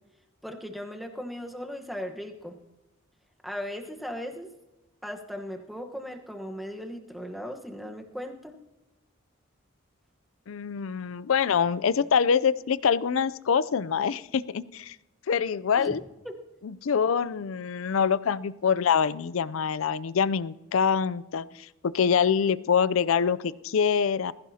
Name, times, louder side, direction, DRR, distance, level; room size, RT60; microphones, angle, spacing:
voice 1, 0.4-2.6 3.4-4.5 5.0-8.6 15.8-16.0 16.2-16.3, equal, ahead, 3 dB, 1.1 m, -37 dB
voice 2, 10.5-15.0 15.3-16.0 16.8-24.3, left 6 dB, 75° left, 18 dB, 0.4 m, -25 dB
20.0 x 15.0 x 2.8 m, 1.0 s
head